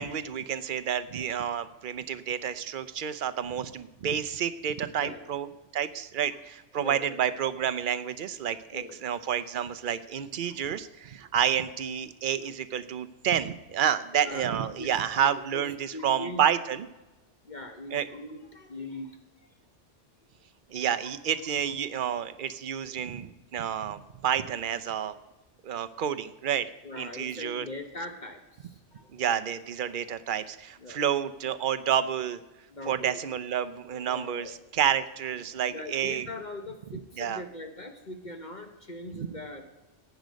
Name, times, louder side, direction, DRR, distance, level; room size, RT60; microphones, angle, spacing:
voice 1, 0.0-5.5 5.7-16.9 17.9-18.1 20.7-25.1 25.6-26.7 27.0-27.7 29.1-32.4 32.9-36.3 37.2-37.4 39.1-39.3, right 9 dB, 50° right, 12 dB, 0.7 m, -29 dB
voice 2, 4.9-5.2 6.8-7.2 8.7-9.0 10.5-10.6 14.1-15.7 15.9-16.4 17.4-19.5 20.7-20.8 22.0-22.1 26.8-29.1 30.8-31.0 32.7-33.2 34.0-34.5 35.7-39.6, left 2 dB, 40° left, 5 dB, 1.1 m, -41 dB
15.5 x 9.4 x 5.2 m, 1.1 s
omnidirectional pair, 1.3 m